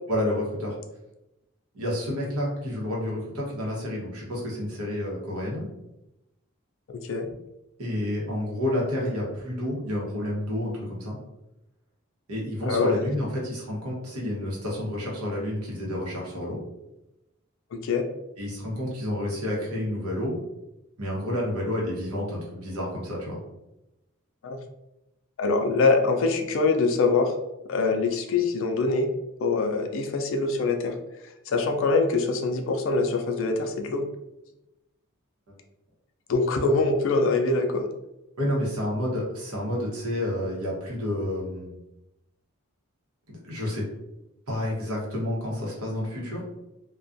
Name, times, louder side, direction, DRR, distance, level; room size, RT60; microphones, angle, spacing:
voice 1, 0.1-0.8 1.7-5.7 7.8-11.2 12.3-16.6 18.4-20.4 21.0-23.4 35.5-35.6 38.4-41.7 43.3-43.8 44.5-46.4, left 1 dB, 90° right, -3 dB, 0.9 m, -30 dB
voice 2, 17.7-18.1 24.4-24.6 25.4-27.3 27.7-29.1 29.4-30.9 31.5-34.1 36.3-37.9, left 3 dB, 60° left, 5 dB, 0.3 m, -24 dB
2.3 x 2.2 x 2.5 m, 0.92 s
head